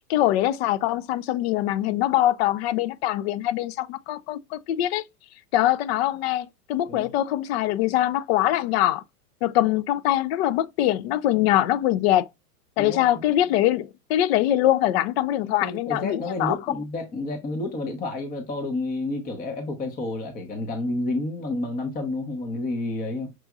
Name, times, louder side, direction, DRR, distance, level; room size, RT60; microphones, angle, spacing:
voice 1, 0.1-5.0 5.5-9.0 9.4-12.3 12.8-16.6, left 13 dB, 45° left, 0.4 m, -23 dB
voice 2, 12.8-13.2 15.4-23.3, left 2 dB, 20° left, 0.8 m, -30 dB
6.0 x 2.6 x 2.3 m
hypercardioid pair, 120°, 45 cm